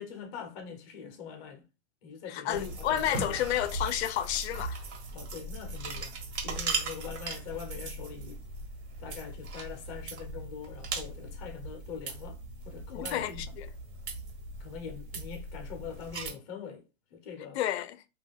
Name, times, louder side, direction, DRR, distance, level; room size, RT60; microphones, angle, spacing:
voice 1, 0.0-1.6 2.0-3.4 5.1-8.4 9.0-12.4 12.6-13.5 14.6-16.8 17.1-17.6, left 7 dB, 25° left, 0.5 m, -43 dB
voice 2, 2.3-4.8 12.9-13.7 17.5-18.0, left 11 dB, 75° left, 0.5 m, -31 dB
sound 1, 2.5-16.3, right 3 dB, 80° right, 1.0 m, -39 dB
2.3 x 2.2 x 3.4 m
supercardioid pair, 170°, 33 cm